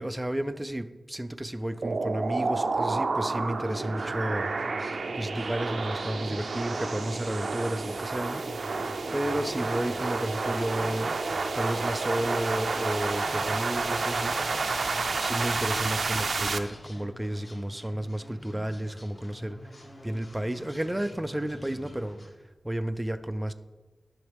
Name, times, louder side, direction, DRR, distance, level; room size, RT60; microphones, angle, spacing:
voice 1, 0.0-4.5 5.2-8.5 9.1-11.2 11.5-14.4 15.2-19.8 20.0-22.2 22.6-23.5, right 1 dB, 10° right, 10 dB, 0.4 m, -32 dB
sound 1, 1.8-16.6, right 3 dB, 70° right, 0.5 m, -30 dB
sound 2, 3.6-22.3, left 1 dB, 45° left, 1.9 m, -47 dB
11.0 x 6.3 x 3.4 m, 1.2 s
wide cardioid pair, 110°, 0 cm